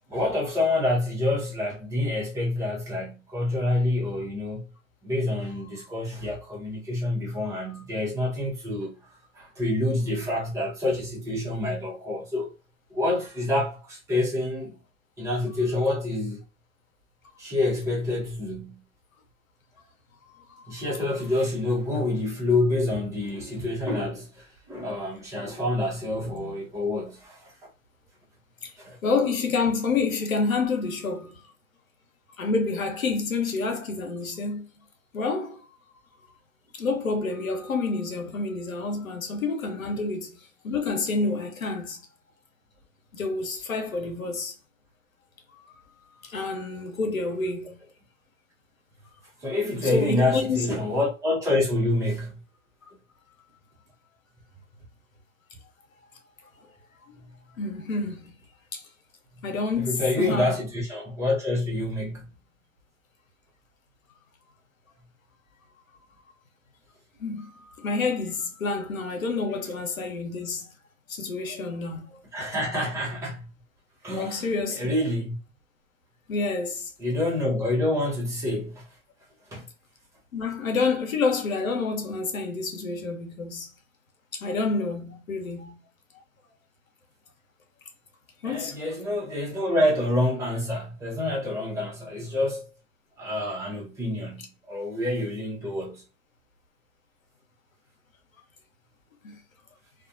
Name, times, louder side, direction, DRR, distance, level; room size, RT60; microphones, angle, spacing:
voice 1, 0.1-4.7 5.0-9.0 9.3-12.5 12.9-14.8 15.2-16.4 17.4-18.8 20.7-27.5 28.8-29.0 39.8-40.0 49.4-52.4 59.8-62.3 72.3-73.5 74.0-74.5 74.8-75.4 77.0-78.9 79.5-79.7 88.4-92.7 93.2-96.0, left 2 dB, 10° right, 0.6 m, -27 dB
voice 2, 20.3-20.9 28.6-28.7 29.0-31.5 32.4-34.7 35.1-35.6 36.7-40.4 40.6-42.0 43.1-44.5 45.5-47.8 49.9-50.6 57.1-57.2 57.6-58.3 58.7-58.8 59.4-60.5 67.2-70.7 71.1-72.2 74.1-74.9 76.3-76.9 80.3-83.7 84.3-85.8 88.4-88.8 99.2-99.4, left 4 dB, 85° left, 0.9 m, -28 dB
2.4 x 2.1 x 2.5 m
hypercardioid pair, 120°, 40 cm